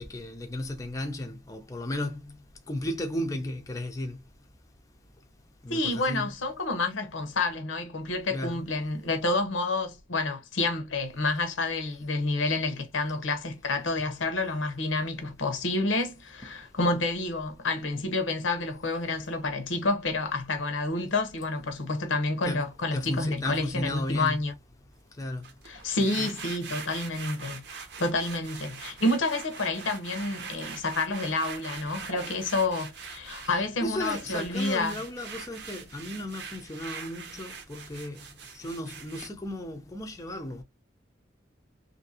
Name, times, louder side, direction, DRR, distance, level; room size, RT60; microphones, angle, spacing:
voice 1, 0.0-2.4 2.7-4.2 5.6-6.3 8.3-8.6 22.5-24.4 25.2-25.4 26.2-26.3 33.5-38.3 38.5-40.6, left 1 dB, 15° left, 0.5 m, -34 dB
voice 2, 5.7-24.5 25.7-35.0, left 2 dB, 85° left, 0.8 m, -29 dB
sound 1, 25.4-39.3, right 6 dB, 60° right, 0.7 m, -42 dB
2.8 x 2.6 x 2.7 m
head